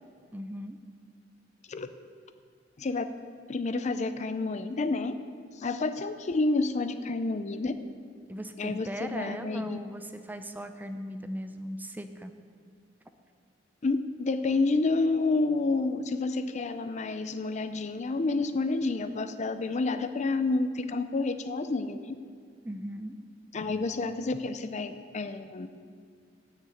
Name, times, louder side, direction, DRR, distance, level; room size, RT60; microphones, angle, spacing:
voice 1, 0.3-0.8 8.3-12.3 22.6-23.1, equal, 10° right, 8 dB, 0.5 m, -38 dB
voice 2, 2.8-3.1 3.5-5.1 5.6-7.7 8.6-9.8 13.8-22.2 23.5-25.7, left 3 dB, 40° left, 10 dB, 0.5 m, -29 dB
9.6 x 6.6 x 7.8 m, 2.1 s
head